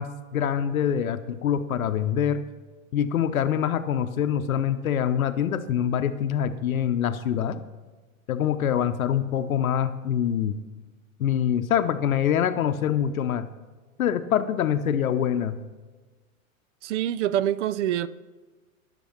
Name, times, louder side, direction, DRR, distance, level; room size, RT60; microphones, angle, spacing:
voice 1, 0.0-2.5 2.9-7.6 8.3-10.6 11.2-13.5 14.0-15.6, left 9 dB, 85° left, 0.7 m, -25 dB
voice 2, 16.8-18.1, right 11 dB, 60° right, 0.6 m, -25 dB
13.0 x 6.9 x 5.9 m
hypercardioid pair, 115°, 41 cm